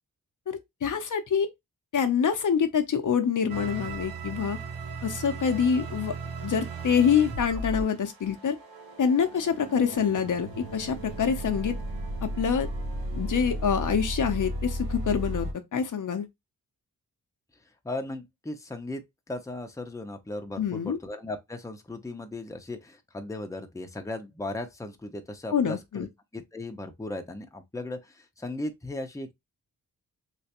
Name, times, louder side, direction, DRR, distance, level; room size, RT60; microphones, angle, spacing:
voice 1, 0.5-1.5 1.9-4.6 5.0-6.1 6.4-8.6 9.0-11.8 12.2-12.7 13.1-16.3 20.6-21.0 25.5-26.1, left 7 dB, 60° left, 0.7 m, -26 dB
sound 1, 3.5-15.5, right 1 dB, 90° right, 1.1 m, -35 dB
voice 2, 17.8-26.1 26.3-29.3, left 2 dB, 10° left, 0.7 m, -37 dB
3.3 x 3.0 x 2.9 m
cardioid pair, 75°, 35 cm